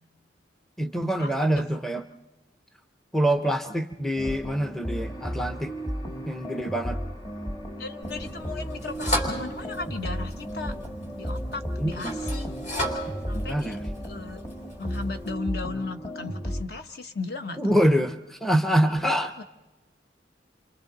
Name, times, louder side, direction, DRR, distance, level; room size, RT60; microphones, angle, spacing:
voice 1, 0.8-2.0 3.1-5.7 6.3-7.0 11.8-12.2 13.3-13.8 17.6-19.4, right 1 dB, ahead, 8 dB, 0.6 m, -25 dB
sound 1, 4.2-16.6, equal, 20° left, 1.5 m, -34 dB
voice 2, 7.8-10.7 11.2-12.5 13.3-13.8 14.0-14.4 14.8-17.8 19.2-19.4, left 3 dB, 55° left, 7 dB, 1.1 m, -36 dB
sound 2, 8.0-15.4, equal, 40° left, 3.4 m, -35 dB
29.5 x 25.5 x 4.0 m, 1.1 s
head